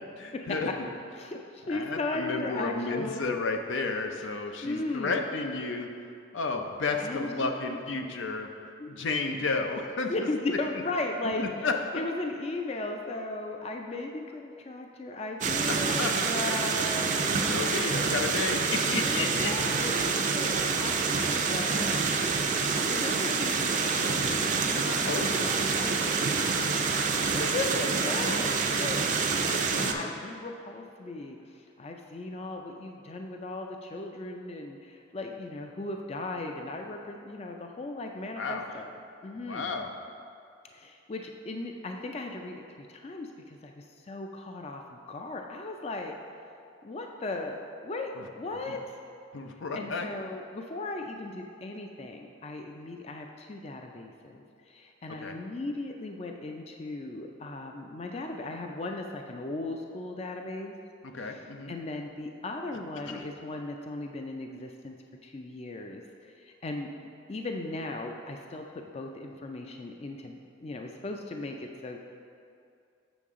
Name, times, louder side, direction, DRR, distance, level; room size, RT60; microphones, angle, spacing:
voice 1, 0.2-0.7 1.7-5.9 6.3-10.1 11.4-12.0 15.7-16.1 17.5-19.7 24.6-25.5 29.7-30.0 38.3-38.6 39.5-39.9 48.2-48.3 48.7-48.8 49.3-50.1 55.2-55.4 61.0-61.7 63.1-63.3, left 3 dB, 80° left, 4 dB, 0.6 m, -32 dB
voice 2, 1.2-3.3 4.6-5.2 7.0-7.8 8.8-8.9 10.1-11.7 11.9-17.5 18.3-18.4 19.0-22.1 22.8-25.1 25.4-26.0 27.3-29.2 29.5-39.7 40.7-46.1 46.8-48.8 49.7-60.7 61.2-65.0 65.2-72.0, left 2 dB, 35° left, 3 dB, 0.4 m, -37 dB
sound 1, 15.4-29.9, right 4 dB, 40° right, 0.5 m, -27 dB
7.1 x 6.7 x 3.6 m, 2.5 s
head